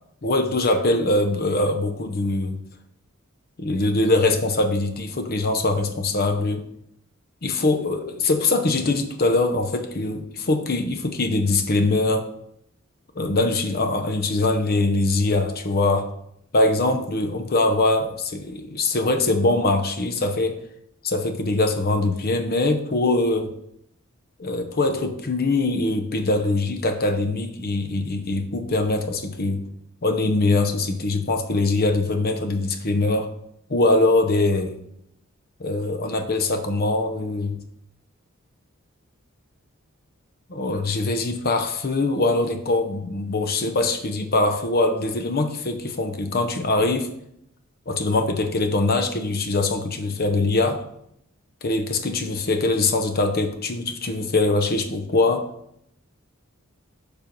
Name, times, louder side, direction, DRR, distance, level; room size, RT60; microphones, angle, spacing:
voice 1, 0.2-2.6 3.6-6.6 7.4-12.3 13.1-16.1 16.5-20.6 21.0-23.5 24.4-29.7 30.0-33.3 33.7-34.8 35.6-37.6 40.5-47.1 47.9-50.8 51.6-55.5, left 2 dB, 50° left, 6 dB, 0.8 m, -22 dB
6.8 x 3.5 x 5.9 m, 0.74 s
head